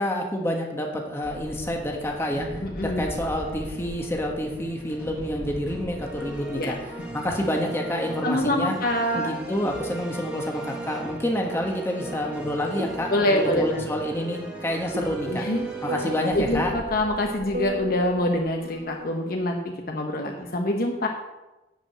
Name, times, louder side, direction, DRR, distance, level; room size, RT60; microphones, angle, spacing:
voice 1, 0.0-2.5 2.8-6.7 7.1-8.7 9.2-15.4 15.8-16.7, equal, 15° left, 1 dB, 1.3 m, -28 dB
sound 1, 1.2-18.8, right 1 dB, 10° right, 1.7 m, -38 dB
voice 2, 2.6-3.0 6.6-6.7 8.2-9.3 13.1-13.9 15.2-15.7 16.3-21.1, left 1 dB, 55° left, 2 dB, 1.0 m, -25 dB
sound 2, 12.4-19.3, left 2 dB, 60° right, 1.5 m, -37 dB
11.5 x 5.1 x 7.5 m, 1.1 s
head